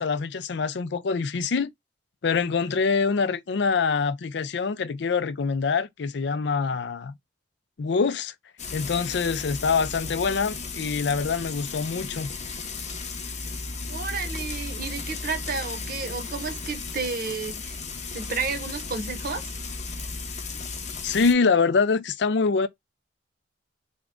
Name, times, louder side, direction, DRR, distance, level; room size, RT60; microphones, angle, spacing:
voice 1, 0.0-1.7 2.2-7.1 7.8-8.3 8.7-12.3 21.0-22.7, left 5 dB, 65° left, 0.4 m, -25 dB
Frying (food), 8.6-21.3, left 4 dB, 40° left, 0.8 m, -35 dB
voice 2, 13.9-17.8 18.1-19.5, right 4 dB, 55° right, 0.8 m, -32 dB
3.6 x 2.2 x 3.6 m
head